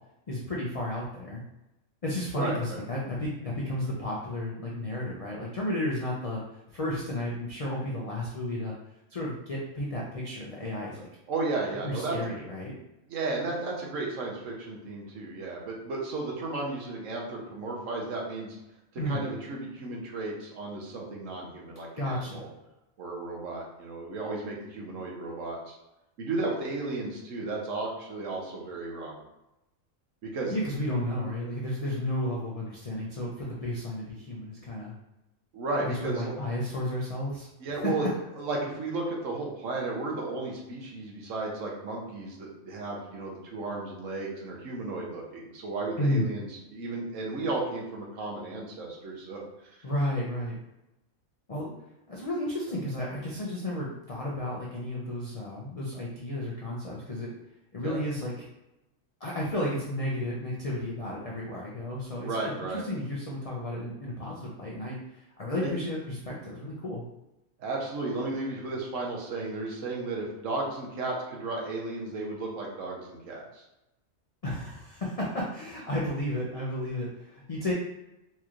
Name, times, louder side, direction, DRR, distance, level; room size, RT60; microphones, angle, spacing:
voice 1, 0.3-1.4 2.0-6.4 6.7-8.7 9.1-11.1 11.8-12.8 19.0-19.3 22.0-22.5 30.5-34.9 35.8-37.5 37.8-38.1 46.0-46.4 49.8-50.6 51.5-51.7 52.1-57.3 57.7-58.5 59.2-67.0 74.4-77.7, left 1 dB, 60° left, -5 dB, 0.3 m, -32 dB
voice 2, 2.3-2.8 11.3-12.2 13.1-18.6 18.9-22.5 23.0-25.7 26.2-29.2 30.2-30.5 35.5-36.3 37.6-38.0 38.4-49.7 57.8-58.0 62.2-62.8 65.6-65.7 67.6-73.6, right 3 dB, 70° right, -2 dB, 1.2 m, -34 dB
4.3 x 3.0 x 2.4 m, 0.92 s
omnidirectional pair, 1.4 m